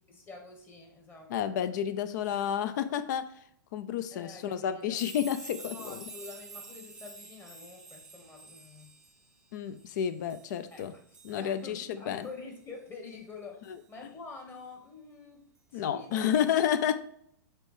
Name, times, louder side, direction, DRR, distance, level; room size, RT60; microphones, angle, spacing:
voice 1, 0.1-1.5 4.1-5.0 5.6-8.9 10.7-16.3, left 4 dB, 20° left, 1.5 m, -47 dB
voice 2, 1.3-3.3 3.7-6.0 9.5-10.9 11.2-12.2 15.7-17.0, left 9 dB, 60° left, 0.6 m, -30 dB
sound 1, 4.9-11.9 12.2-12.3 13.6-13.7, right 3 dB, 5° right, 0.9 m, -48 dB
6.0 x 3.4 x 5.0 m
hypercardioid pair, 120°, 11 cm